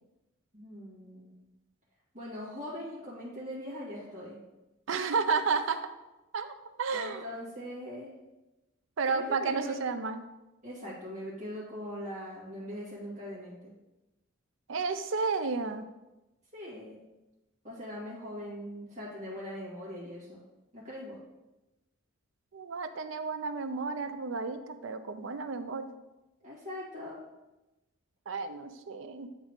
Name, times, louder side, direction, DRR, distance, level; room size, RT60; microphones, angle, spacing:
voice 1, 0.5-1.5 2.1-4.4 6.9-8.1 9.0-9.8 10.6-13.7 16.5-17.0 17.6-20.4 20.7-21.2 26.4-27.2, left 1 dB, 35° right, -8 dB, 2.0 m, -41 dB
voice 2, 4.9-5.9 6.3-7.2 9.0-10.2 14.7-15.9 22.5-25.8 28.3-29.3, right 4 dB, 60° right, 9 dB, 0.4 m, -32 dB
8.0 x 3.6 x 3.6 m, 1.0 s
head